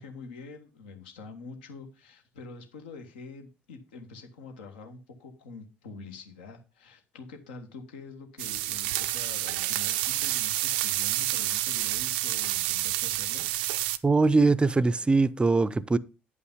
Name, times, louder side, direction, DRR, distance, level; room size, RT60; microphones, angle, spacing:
voice 1, 0.0-13.5, left 4 dB, 70° left, 1.4 m, -45 dB
sound 1, 8.4-14.0, right 15 dB, 65° right, 0.4 m, -29 dB
voice 2, 14.0-16.0, right 3 dB, 15° right, 0.5 m, -22 dB
9.6 x 5.6 x 5.4 m
figure-of-eight pair, 55°, 6 cm